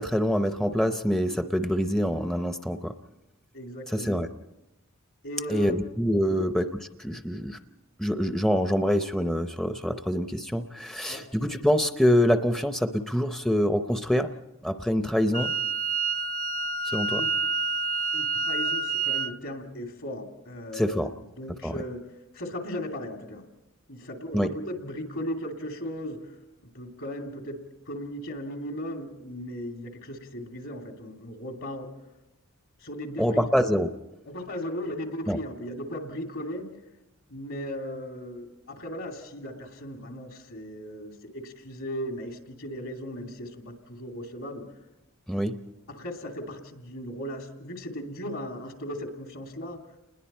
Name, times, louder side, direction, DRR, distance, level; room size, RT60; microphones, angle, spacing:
voice 1, 0.0-2.9 3.9-4.3 5.5-6.7 7.0-7.6 8.0-14.3 14.6-15.5 16.8-17.2 20.7-21.1 21.6-21.8 24.3-24.5 33.2-33.9 35.3-35.4 45.3-45.6, equal, ahead, 7 dB, 0.6 m, -25 dB
voice 2, 3.5-4.1 5.2-5.7 6.2-6.5 11.1-11.2 17.1-17.3 18.1-22.0 22.3-23.5 23.9-26.3 26.6-27.6 27.9-31.9 32.8-33.5 34.3-36.7 37.3-44.7 45.9-49.8, equal, 70° left, 3 dB, 2.9 m, -37 dB
Wind instrument woodwind instrument, 15.3-19.3, right 4 dB, 35° right, 0.6 m, -28 dB
29.0 x 20.5 x 4.4 m, 0.95 s
head